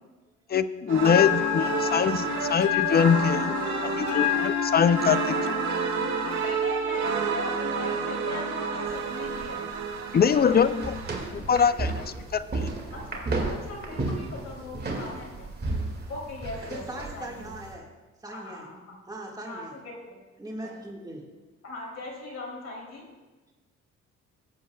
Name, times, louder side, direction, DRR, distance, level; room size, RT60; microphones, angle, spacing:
voice 1, 0.5-3.5 3.8-5.3 10.1-10.9 11.3-12.0 12.3-12.7, left 7 dB, 35° left, 14 dB, 0.4 m, -23 dB
sound 1, 0.9-11.3, right 6 dB, 80° right, 1.5 m, -30 dB
Bell, 1.0-9.0, left 15 dB, 85° left, 0.5 m, -31 dB
voice 2, 6.3-9.7 10.1-10.7 12.9-13.2 13.5-15.5 16.1-17.5 18.3-19.0 19.4-19.9 21.6-23.0, left 2 dB, 60° left, -3 dB, 3.2 m, -39 dB
sound 2, 8.9-17.7, right 2 dB, 30° right, 2.1 m, -34 dB
voice 3, 11.5-11.9 12.1-12.6 12.9-13.0 16.7-17.9 18.2-18.7 19.1-19.8 20.4-21.2, right 1 dB, 10° right, -1 dB, 1.8 m, -41 dB
17.5 x 7.8 x 2.3 m, 1.3 s
cardioid pair, 90°, 30 cm